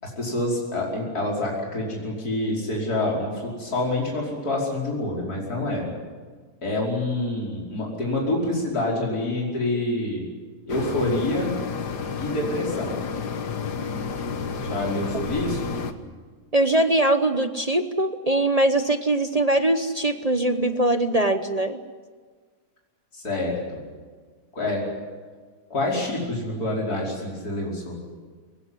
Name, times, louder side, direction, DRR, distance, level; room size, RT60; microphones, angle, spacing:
voice 1, 0.0-5.9 6.6-10.3 10.7-11.5 12.2-13.0 14.6-15.7 23.1-23.8 24.5-24.8 25.7-28.0, left 2 dB, 70° left, -2 dB, 5.7 m, -27 dB
sound 1, 10.7-15.9, left 5 dB, 85° left, 2.0 m, -31 dB
voice 2, 16.5-21.8, right 1 dB, 30° right, 8 dB, 0.9 m, -22 dB
22.5 x 19.5 x 9.7 m, 1.5 s
omnidirectional pair, 1.7 m